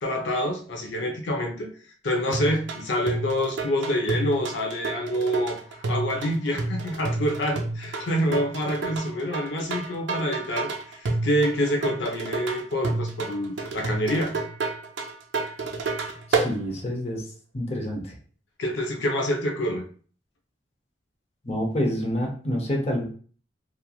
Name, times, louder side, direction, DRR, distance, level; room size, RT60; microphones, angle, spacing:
voice 1, 0.0-1.7 2.0-14.4 18.6-19.8, equal, 85° left, 3 dB, 0.6 m, -27 dB
sound 1, 2.3-16.5, right 3 dB, 80° right, 0.5 m, -30 dB
voice 2, 16.3-17.2 17.5-18.1 21.4-23.0, equal, 35° left, 0 dB, 0.6 m, -27 dB
2.9 x 2.5 x 2.3 m, 0.43 s
head